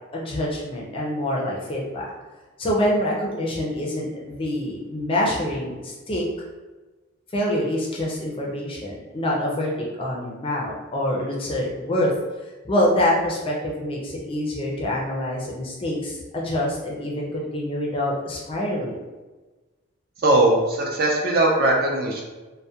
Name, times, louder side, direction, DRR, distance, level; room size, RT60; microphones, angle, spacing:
voice 1, 0.1-2.1 2.6-6.2 7.3-9.7 10.0-12.1 12.6-19.0, left 1 dB, 25° left, -3 dB, 0.4 m, -26 dB
voice 2, 20.2-22.2, right 2 dB, 45° right, -1 dB, 0.4 m, -20 dB
2.3 x 2.1 x 2.7 m, 1.2 s
head